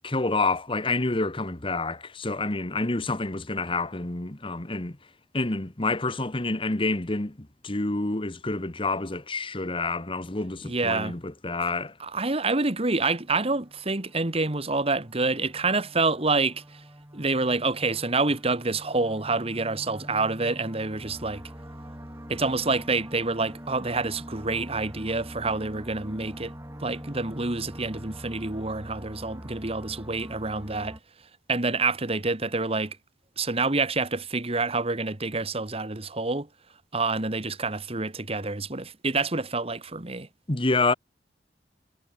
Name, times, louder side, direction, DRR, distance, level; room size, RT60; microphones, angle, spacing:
voice 1, 0.0-5.0 5.3-11.9 40.5-40.9, left 3 dB, 30° left, 1.4 m, -28 dB
voice 2, 10.6-11.2 12.0-16.8 17.1-21.4 22.3-26.5 26.8-31.0 31.5-33.0 33.4-36.5 36.9-40.3, right 3 dB, 35° right, 1.7 m, -27 dB
sound 1, 12.9-31.0, equal, 15° right, 7.9 m, -44 dB
head